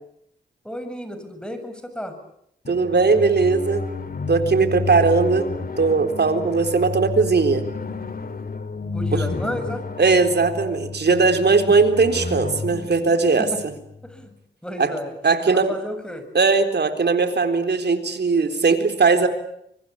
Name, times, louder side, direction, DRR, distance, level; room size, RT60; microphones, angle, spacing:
voice 1, 0.6-2.1 8.9-9.8 13.4-13.6 14.0-14.3 14.6-15.1 15.5-16.2, equal, 5° left, 9 dB, 7.3 m, -32 dB
sound 1, 2.6-14.3, left 4 dB, 50° left, 2.4 m, -31 dB
voice 2, 2.7-3.8 4.3-7.6 9.1-9.2 10.0-13.5 14.8-14.9 15.2-15.7 16.3-19.3, right 4 dB, 65° right, 7 dB, 3.9 m, -19 dB
24.5 x 24.0 x 8.6 m, 0.73 s
cardioid pair, 45°, 19 cm